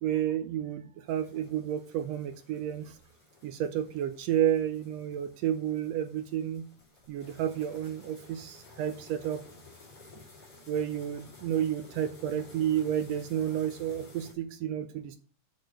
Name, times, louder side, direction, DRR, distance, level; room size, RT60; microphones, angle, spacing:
voice 1, 0.0-3.0 3.4-6.7 7.1-9.4 10.7-15.2, right 10 dB, 80° right, 10 dB, 1.5 m, -31 dB
sound 1, 1.1-14.3, left 3 dB, 30° left, 3.1 m, -54 dB
6.4 x 6.4 x 4.8 m, 0.43 s
omnidirectional pair, 3.5 m